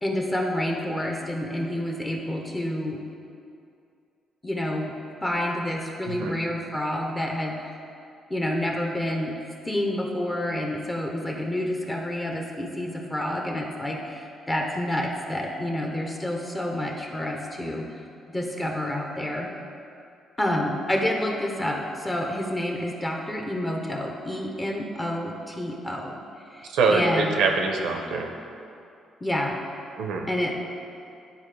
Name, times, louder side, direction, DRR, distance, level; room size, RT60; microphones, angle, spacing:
voice 1, 0.0-3.0 4.4-4.9 5.2-7.7 8.3-9.4 9.7-19.5 20.4-26.2 26.5-27.3 29.2-29.6 30.3-30.5, left 1 dB, 15° left, 0 dB, 0.8 m, -28 dB
voice 2, 26.7-28.3 30.0-30.3, right 4 dB, 85° right, 2 dB, 0.8 m, -24 dB
10.5 x 4.1 x 3.3 m, 2.5 s
cardioid pair, 90°, 0 cm